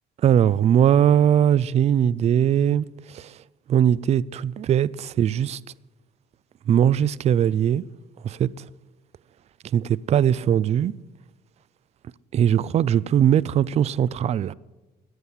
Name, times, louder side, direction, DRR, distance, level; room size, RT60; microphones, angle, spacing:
voice 1, 0.2-2.9 3.1-3.3 3.7-5.6 6.7-7.8 8.2-8.5 9.7-10.9 12.3-14.5, right 9 dB, 40° right, 0.4 m, -20 dB
14.0 x 8.1 x 7.1 m
cardioid pair, 110°, 17 cm